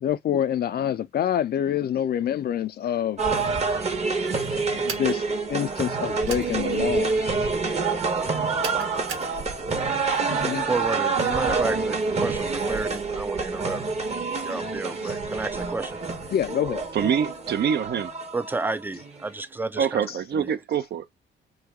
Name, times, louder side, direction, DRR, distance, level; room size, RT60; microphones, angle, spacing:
voice 1, 0.0-3.2 4.8-5.2 5.5-7.1 10.3-10.7 14.5-14.6 15.0-15.1 16.3-16.8, left 10 dB, 50° left, 0.4 m, -26 dB
sound 1, 3.2-19.2, right 4 dB, 35° right, 1.0 m, -27 dB
sound 2, 4.9-5.1 6.3-6.5 8.6-9.3, right 6 dB, 90° right, 1.2 m, -35 dB
voice 2, 10.6-13.8 14.4-16.0 18.3-20.0 20.3-20.6, right 3 dB, 10° right, 0.4 m, -31 dB
voice 3, 16.9-18.1 19.7-21.1, right 8 dB, 55° right, 0.6 m, -25 dB
3.2 x 2.2 x 3.4 m
cardioid pair, 90°, 20 cm